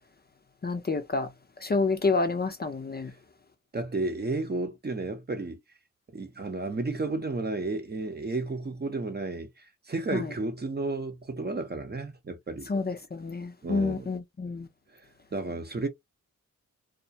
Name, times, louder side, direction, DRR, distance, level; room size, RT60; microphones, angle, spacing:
voice 1, 0.6-1.3 1.6-3.1 10.1-10.3 12.7-14.7, left 3 dB, 30° left, 0.5 m, -28 dB
voice 2, 3.7-5.6 6.1-12.7 13.6-14.1 14.9-15.0 15.3-15.9, right 2 dB, 30° right, 0.7 m, -32 dB
2.3 x 2.1 x 2.6 m
cardioid pair, 65°, 33 cm